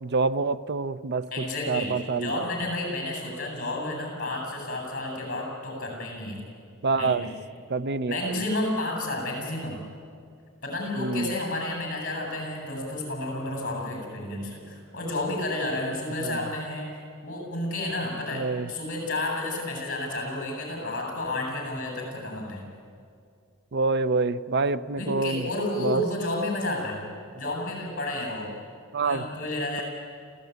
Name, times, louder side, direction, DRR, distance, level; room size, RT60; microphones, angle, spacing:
voice 1, 0.0-2.5 6.8-7.3 7.7-8.4 11.0-11.4 16.2-16.4 18.3-18.7 23.7-25.5 25.8-26.0 28.9-29.3, right 3 dB, 55° right, 15 dB, 0.6 m, -27 dB
voice 2, 1.3-1.9 2.2-6.4 7.0-7.3 8.1-9.8 10.6-22.7 25.0-27.0 27.3-28.5 29.0-29.8, left 1 dB, 40° left, 1 dB, 7.5 m, -31 dB
28.5 x 15.5 x 9.5 m, 2.3 s
head